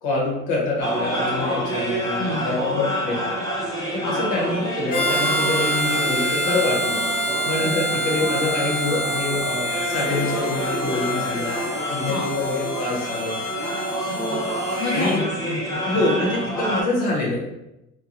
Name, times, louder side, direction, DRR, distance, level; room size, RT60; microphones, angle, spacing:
voice 1, 0.0-3.2 3.9-7.0 7.4-11.5 11.9-13.3 14.9-15.2 15.8-17.4, left 2 dB, 90° left, -3 dB, 0.9 m, -25 dB
sound 1, 0.8-16.8, equal, 10° left, 0.8 m, -28 dB
voice 2, 2.2-2.9 4.0-4.2 7.6-7.7 12.1-12.3 14.1-14.4 14.8-16.1, left 2 dB, 65° left, -4 dB, 0.7 m, -30 dB
Harmonica, 4.9-15.2, equal, 50° left, 1.1 m, -27 dB
2.8 x 2.2 x 2.4 m, 0.90 s
supercardioid pair, 85°, 33 cm